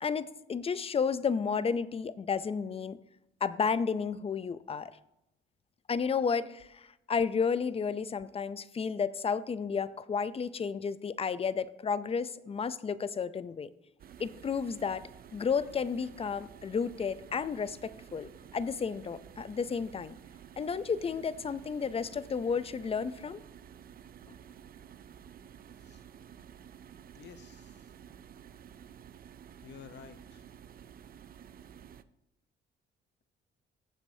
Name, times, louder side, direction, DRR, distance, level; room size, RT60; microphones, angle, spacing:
voice 1, 0.0-3.0 3.4-4.9 5.9-13.7 14.2-15.0 15.3-20.2 20.6-23.4, left 6 dB, 30° left, 15 dB, 0.5 m, -32 dB
sound 1, 14.0-32.0, right 8 dB, 50° right, 0.5 m, -52 dB
voice 2, 27.1-27.9 29.6-30.5, left 8 dB, 60° left, 12 dB, 0.7 m, -51 dB
14.5 x 7.4 x 2.7 m, 0.86 s
cardioid pair, 90°, 20 cm